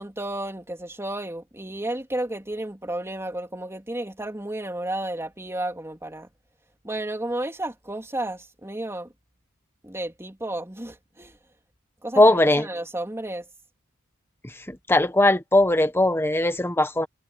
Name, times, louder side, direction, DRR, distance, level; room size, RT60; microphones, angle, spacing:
voice 1, 0.0-6.3 6.8-9.1 9.8-11.4 12.0-13.4, right 1 dB, 10° right, 3.2 m, -32 dB
voice 2, 12.2-12.7 14.7-17.1, left 1 dB, 10° left, 1.3 m, -19 dB
head